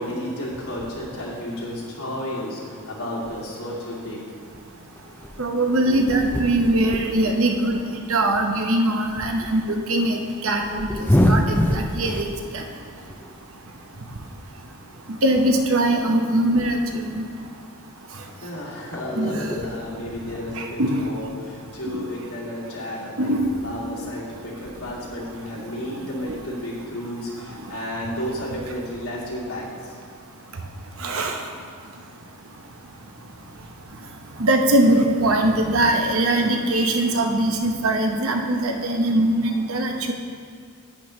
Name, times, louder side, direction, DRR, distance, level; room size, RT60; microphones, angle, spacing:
voice 1, 0.0-2.6 2.9-4.2 13.0-13.1 18.4-30.0, left 1 dB, 85° left, -6 dB, 2.6 m, -32 dB
sound 1, 3.3-4.2 4.5-8.8 9.1-9.3 10.4-12.4 12.8-13.4 14.5-14.6 14.9-15.0 15.5-15.6 15.9-17.2 18.3-18.4 18.7-19.8 20.4-20.8, equal, 10° left, 0.5 m, -26 dB
voice 2, 5.4-7.8 8.1-12.3 12.5-12.6 15.1-17.3 19.1-19.5 20.6-21.1 21.9-22.0 23.2-23.5 31.0-31.4 34.4-40.1, right 1 dB, 65° right, 3 dB, 0.9 m, -21 dB
10.5 x 8.8 x 3.2 m, 2.1 s
head